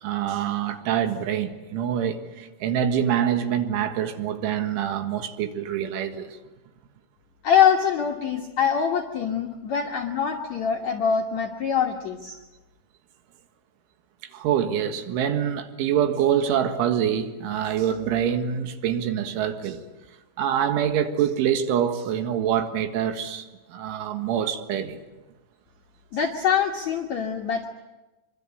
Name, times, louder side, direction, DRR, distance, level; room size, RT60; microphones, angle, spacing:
voice 1, 0.0-6.4 14.3-19.8 20.4-25.0, right 9 dB, 80° right, 4.0 m, -25 dB
voice 2, 7.4-12.4 26.1-27.7, left 7 dB, 85° left, 1.5 m, -24 dB
25.0 x 24.0 x 8.5 m
omnidirectional pair, 5.5 m